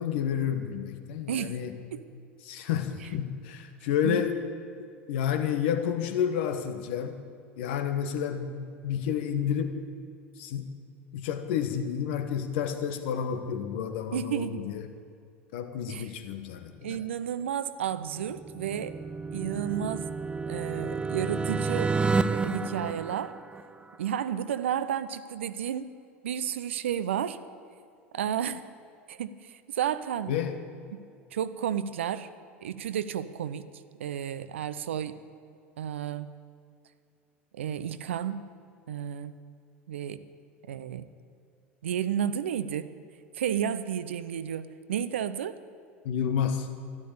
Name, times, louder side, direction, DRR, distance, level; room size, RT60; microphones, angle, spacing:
voice 1, 0.0-1.8 2.4-4.3 5.1-7.2 7.6-9.8 10.4-10.7 11.1-14.8 15.5-17.0 30.3-30.6 46.0-46.7, left 8 dB, 60° left, 8 dB, 1.3 m, -30 dB
voice 2, 1.3-1.6 1.9-2.0 4.0-4.2 14.1-14.7 15.9-16.1 16.8-19.0 19.3-20.1 20.5-22.0 22.3-23.3 24.0-25.9 26.2-27.4 28.1-28.6 29.1-30.3 30.9-31.0 31.3-32.3 32.6-33.7 34.0-35.2 35.8-36.3 37.5-38.5 38.9-39.4 39.9-40.2 40.7-41.1 41.8-42.9 43.3-45.6, right 9 dB, 70° right, 13 dB, 0.7 m, -32 dB
sound 1, 18.1-23.9, right 4 dB, 15° right, 0.5 m, -30 dB
13.0 x 12.0 x 8.7 m, 2.3 s
figure-of-eight pair, 75°, 7 cm